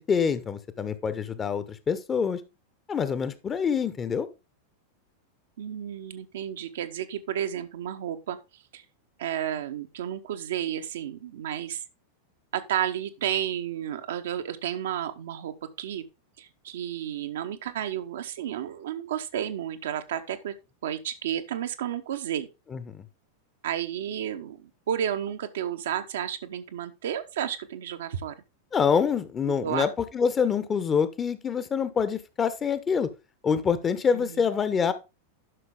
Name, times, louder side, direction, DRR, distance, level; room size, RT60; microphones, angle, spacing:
voice 1, 0.0-2.4 2.9-4.3 22.7-23.0 28.7-33.1 33.4-34.9, left 6 dB, 20° left, 1.0 m, -26 dB
voice 2, 5.6-8.4 8.7-8.8 9.2-11.8 12.5-16.0 16.4-20.5 20.8-22.5 23.6-28.3 29.6-29.9 34.1-34.5, right 10 dB, 60° right, 0.9 m, -32 dB
11.0 x 6.0 x 3.6 m
figure-of-eight pair, 90°, 0 cm